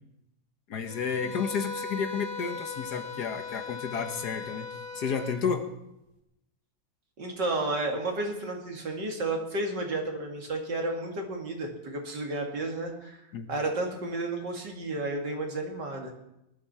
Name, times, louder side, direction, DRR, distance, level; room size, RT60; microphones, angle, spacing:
voice 1, 0.7-4.7 4.9-5.7 13.3-13.5, left 6 dB, 60° left, 7 dB, 1.6 m, -31 dB
sound 1, 0.8-5.4, left 4 dB, 40° left, 3.6 m, -39 dB
voice 2, 7.2-13.2 13.5-16.1, right 2 dB, 65° right, 1 dB, 2.9 m, -32 dB
20.0 x 12.5 x 4.3 m, 0.86 s
omnidirectional pair, 2.1 m